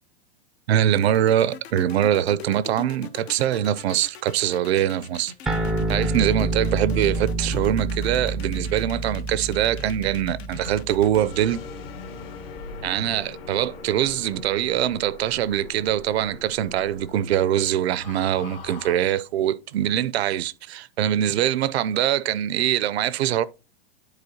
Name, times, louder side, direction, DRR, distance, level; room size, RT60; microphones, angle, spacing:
voice 1, 0.7-5.3 5.9-11.6 12.8-23.4, right 11 dB, 80° right, 0.5 m, -23 dB
sound 1, 0.9-11.2, left 7 dB, 80° left, 0.9 m, -41 dB
sound 2, 5.5-12.3, right 2 dB, ahead, 0.3 m, -28 dB
sound 3, 11.2-18.9, left 5 dB, 65° left, 1.4 m, -41 dB
9.9 x 4.1 x 2.8 m
hypercardioid pair, 130°, 32 cm